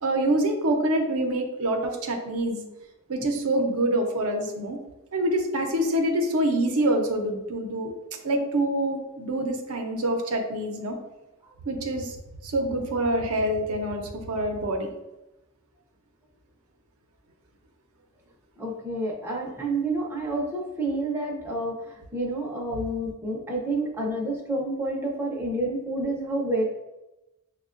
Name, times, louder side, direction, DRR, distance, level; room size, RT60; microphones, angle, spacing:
voice 1, 0.0-2.6 3.1-4.8 5.1-7.9 8.2-11.0 11.7-12.2 12.4-14.9, right 1 dB, 70° right, 3 dB, 0.6 m, -26 dB
voice 2, 18.6-26.6, right 2 dB, 10° right, -3 dB, 0.5 m, -29 dB
6.2 x 2.2 x 2.4 m, 0.99 s
head